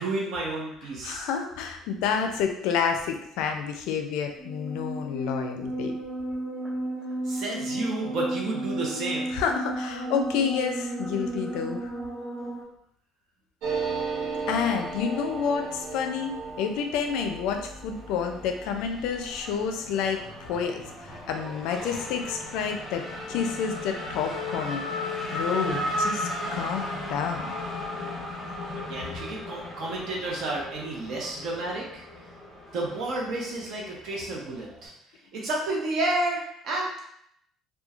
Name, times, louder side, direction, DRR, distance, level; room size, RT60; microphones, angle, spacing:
voice 1, 0.0-1.3 7.2-9.3 28.9-32.0 32.7-34.9 35.3-37.0, right 2 dB, 50° right, -2 dB, 0.7 m, -31 dB
voice 2, 1.0-5.9 9.3-11.9 14.5-16.3 16.6-20.8 21.3-24.8 25.2-27.5, left 7 dB, 85° left, 5 dB, 0.3 m, -29 dB
sound 1, 4.4-12.6, right 1 dB, 5° right, 0.5 m, -33 dB
sound 2, 13.6-22.8 23.1-23.2 23.4-23.9, right 4 dB, 90° right, 0.5 m, -37 dB
Race car auto racing / Accelerating revving vroom, 17.9-34.9, left 1 dB, 10° left, 0.9 m, -36 dB
2.9 x 2.2 x 2.3 m, 0.73 s
cardioid pair, 175°, 0 cm